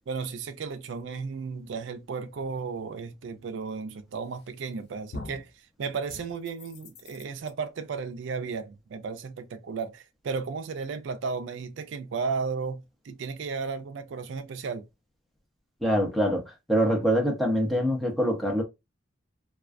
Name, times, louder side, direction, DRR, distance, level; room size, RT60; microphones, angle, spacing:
voice 1, 0.1-5.5 5.8-14.8, right 5 dB, 70° right, 0.4 m, -34 dB
sound 1, 4.3-4.7 5.1-5.5 6.1-7.5, left 3 dB, 55° left, 0.4 m, -43 dB
voice 2, 15.8-18.6, equal, ahead, 0.6 m, -24 dB
2.3 x 2.2 x 2.4 m
head